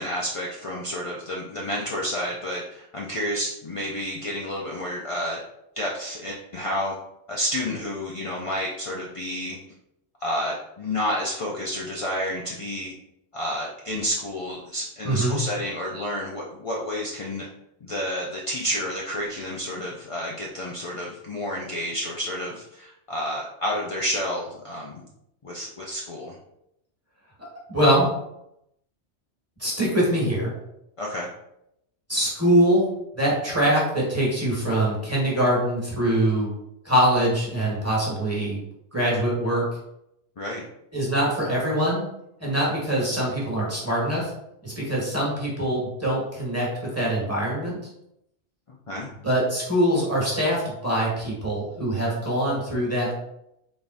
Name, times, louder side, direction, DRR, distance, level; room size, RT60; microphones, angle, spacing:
voice 1, 0.0-5.4 5.8-6.9 7.3-9.6 10.2-12.9 13.3-17.5 17.8-25.0 25.4-26.4 31.0-31.3 40.4-40.6 48.7-49.1, equal, 50° left, -2 dB, 0.4 m, -30 dB
voice 2, 15.0-15.4 27.7-28.1 29.6-30.5 32.1-32.9 33.1-36.5 36.8-38.6 38.9-39.6 40.9-42.0 42.4-44.3 44.6-46.7 46.9-47.8 49.2-53.1, right 1 dB, 15° right, -6 dB, 1.4 m, -23 dB
4.1 x 3.5 x 2.5 m, 0.81 s
omnidirectional pair, 1.2 m